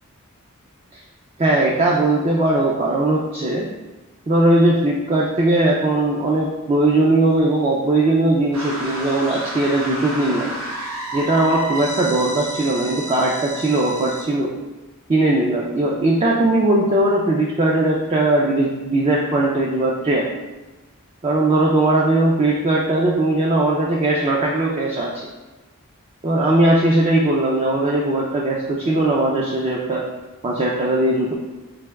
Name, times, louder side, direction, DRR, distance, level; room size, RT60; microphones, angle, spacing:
voice 1, 1.4-3.7 4.3-10.5 11.1-14.5 15.1-20.3 21.2-25.1 26.2-30.0 30.4-31.3, right 2 dB, 30° right, -3 dB, 0.4 m, -19 dB
sound 1, 8.5-14.2, right 1 dB, 75° right, 1.1 m, -31 dB
3.3 x 2.9 x 3.4 m, 1.1 s
head